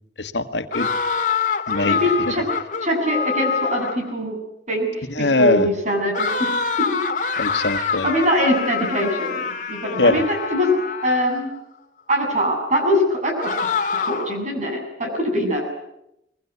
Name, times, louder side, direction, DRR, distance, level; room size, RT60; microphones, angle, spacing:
voice 1, 0.2-0.9 1.7-2.0 2.3-2.4 5.2-5.7 7.4-8.1 10.0-10.3, left 2 dB, 85° left, 9 dB, 1.7 m, -21 dB
sound 1, 0.7-4.1 6.1-11.4 13.4-14.4, left 5 dB, 45° left, 2.4 m, -25 dB
voice 2, 1.8-2.4 2.8-4.4 4.7-6.5 7.7-11.5 12.1-13.5 14.0-15.7, equal, 45° right, 2 dB, 7.8 m, -23 dB
25.0 x 21.5 x 9.6 m, 0.84 s
head